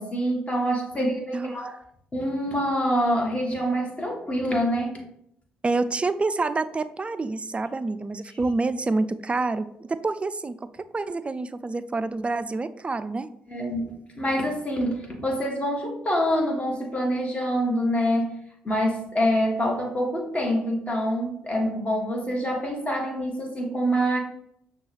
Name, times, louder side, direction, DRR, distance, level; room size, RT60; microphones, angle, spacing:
voice 1, 0.0-1.7 2.1-5.0 13.5-18.4 18.6-24.2, equal, 25° left, 0 dB, 1.5 m, -26 dB
voice 2, 0.9-1.8 5.6-10.6 10.9-13.3, right 3 dB, 25° right, 12 dB, 0.3 m, -28 dB
6.0 x 2.3 x 3.3 m, 0.72 s
hypercardioid pair, 45°, 5 cm